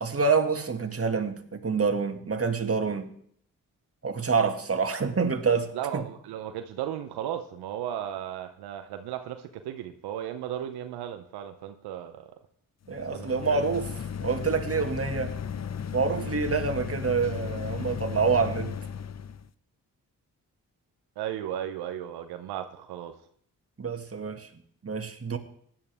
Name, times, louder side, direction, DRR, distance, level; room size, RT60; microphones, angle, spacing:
voice 1, 0.0-3.1 4.0-6.0 12.9-13.9 14.2-15.3 15.9-18.7 23.8-24.5 24.8-25.4, right 5 dB, 40° right, 5 dB, 2.0 m, -27 dB
voice 2, 5.7-12.2 13.1-13.6 16.1-16.4 21.2-23.1, right 10 dB, 90° right, 8 dB, 0.7 m, -35 dB
sound 1, 12.9-19.5, left 7 dB, 45° left, 0.8 m, -35 dB
16.5 x 10.5 x 3.5 m, 0.63 s
supercardioid pair, 40°, 38 cm